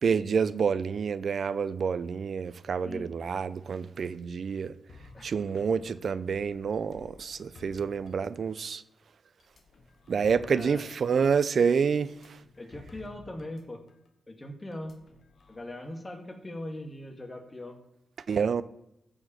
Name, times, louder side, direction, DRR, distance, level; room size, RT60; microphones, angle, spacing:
voice 1, 0.0-4.8 5.2-8.8 10.1-12.4 18.3-18.6, right 6 dB, 65° right, 0.5 m, -28 dB
sound 1, 4.9-8.8 9.4-13.6 13.9-14.1 14.7-15.6, left 3 dB, 65° left, 1.3 m, -54 dB
voice 2, 10.3-10.8 12.6-13.8 14.3-14.9 15.5-17.8, left 1 dB, 25° left, 1.8 m, -40 dB
14.5 x 4.8 x 4.3 m
cardioid pair, 60°, 0 cm